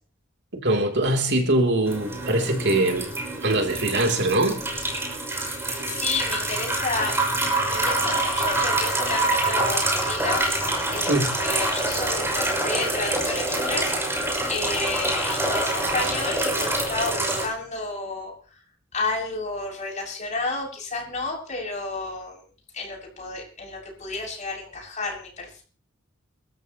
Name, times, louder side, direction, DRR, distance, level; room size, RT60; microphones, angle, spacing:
voice 1, 0.5-3.1 3.4-4.6 11.1-11.4, right 1 dB, 60° right, 3.3 m, -22 dB
sound 1, 1.8-17.5, right 2 dB, 15° right, 6.2 m, -26 dB
voice 2, 5.6-7.2 7.7-18.6 18.9-22.4 22.7-25.6, left 3 dB, 35° left, 7.3 m, -31 dB
28.0 x 14.0 x 3.1 m
head